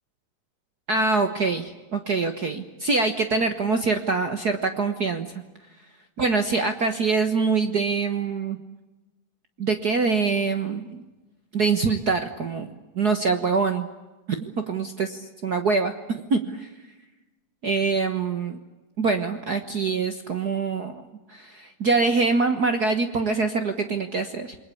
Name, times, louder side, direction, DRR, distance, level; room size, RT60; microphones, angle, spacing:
voice 1, 0.9-5.3 6.2-8.6 9.6-11.0 11.5-13.9 14.3-16.7 17.6-18.6 19.0-21.0 21.3-24.5, right 4 dB, 65° right, 8 dB, 0.9 m, -24 dB
28.5 x 21.5 x 8.5 m, 1.1 s
omnidirectional pair, 3.8 m